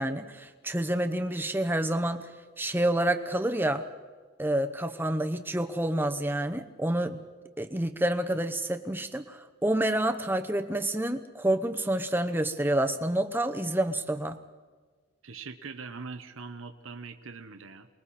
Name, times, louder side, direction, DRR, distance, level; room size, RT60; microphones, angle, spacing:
voice 1, 0.0-2.3 2.6-3.8 4.4-7.2 7.6-14.4, right 1 dB, 10° right, 6 dB, 1.0 m, -28 dB
voice 2, 15.2-17.9, right 4 dB, 85° right, 8 dB, 1.1 m, -42 dB
28.5 x 21.0 x 4.3 m, 1.4 s
head